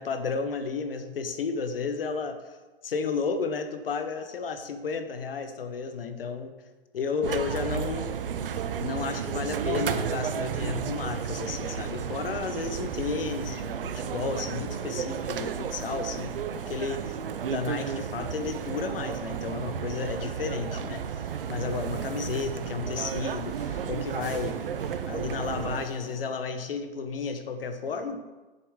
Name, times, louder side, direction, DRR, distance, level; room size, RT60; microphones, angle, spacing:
voice 1, 0.0-2.6 2.8-6.5 6.9-8.1 8.8-17.2 17.4-21.0 21.5-23.6 23.9-24.6 25.1-28.2, left 5 dB, 70° left, 8 dB, 1.0 m, -32 dB
sound 1, 7.2-25.8, right 7 dB, 65° right, 0.6 m, -33 dB
sound 2, 10.5-26.4, right 1 dB, 15° right, 2.3 m, -50 dB
8.1 x 6.8 x 3.6 m, 1.2 s
hypercardioid pair, 165°, 30 cm